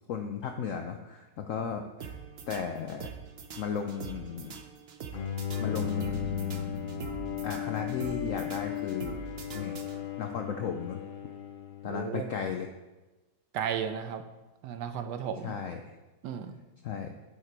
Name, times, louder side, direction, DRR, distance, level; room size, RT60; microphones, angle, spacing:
voice 1, 0.1-2.1 2.5-3.1 3.6-4.6 5.6-7.0 7.4-9.2 9.5-9.8 10.2-11.0 11.8-12.7 15.4-15.9 16.8-17.1, left 6 dB, 75° left, 5 dB, 0.7 m, -35 dB
sound 1, 2.0-10.3, right 6 dB, 60° right, 0.6 m, -44 dB
Bowed string instrument, 5.1-12.4, left 10 dB, 55° left, 1.1 m, -36 dB
sound 2, 5.6-9.6, left 1 dB, 25° left, 1.6 m, -45 dB
voice 2, 11.9-12.3 13.5-14.2 14.6-15.5 16.2-16.6, right 8 dB, 75° right, 8 dB, 1.2 m, -34 dB
8.6 x 6.6 x 4.5 m, 1.1 s
omnidirectional pair, 2.0 m